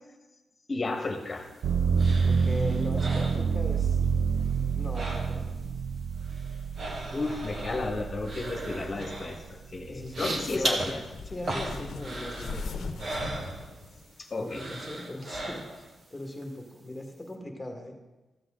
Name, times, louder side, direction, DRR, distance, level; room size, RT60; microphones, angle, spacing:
voice 1, 0.7-1.5 7.1-11.0 14.2-14.6, left 3 dB, 35° left, 4 dB, 1.4 m, -33 dB
sound 1, 1.0-4.1 4.3-5.7 6.0-14.1 14.5-16.0 16.4-16.5, right 2 dB, 50° right, 1.6 m, -37 dB
ambient bass, 1.6-9.4 9.9-10.7, right 6 dB, 80° right, 0.3 m, -28 dB
voice 2, 2.2-4.0 4.8-5.5 9.9-10.9 11.2-13.1 14.4-17.9, left 1 dB, 10° left, 1 dB, 1.8 m, -39 dB
sound 2, 10.1-15.0 15.3-15.5, left 4 dB, 75° left, 0.9 m, -40 dB
14.0 x 7.8 x 3.8 m, 1.1 s
cardioid pair, 110°, 0 cm